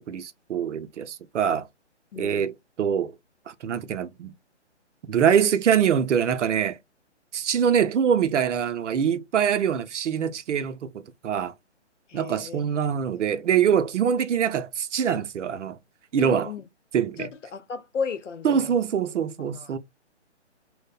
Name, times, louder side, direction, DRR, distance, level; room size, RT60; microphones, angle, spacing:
voice 1, 0.1-1.7 2.2-2.5 2.8-3.1 3.5-4.3 5.1-6.8 7.3-11.5 12.1-15.8 16.1-16.5 16.9-17.3 18.4-19.8, right 8 dB, 80° right, 0.5 m, -24 dB
voice 2, 2.1-2.5 12.1-12.6 16.2-16.6 17.2-18.8 19.4-19.8, left 6 dB, 85° left, 0.7 m, -34 dB
2.6 x 2.0 x 2.3 m
hypercardioid pair, 150°, 35 cm